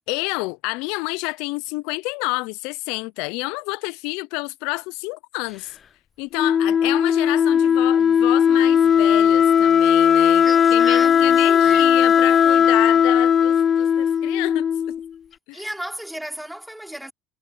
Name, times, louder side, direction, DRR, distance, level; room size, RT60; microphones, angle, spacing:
voice 1, 0.1-5.8 6.2-15.0 15.5-15.6, left 26 dB, 70° left, 0.8 m, -29 dB
Wind instrument woodwind instrument, 6.3-15.1, left 8 dB, 40° left, 0.4 m, -17 dB
voice 2, 10.4-11.9 15.5-17.1, right 1 dB, 5° right, 4.3 m, -34 dB
hypercardioid pair, 80°, 0 cm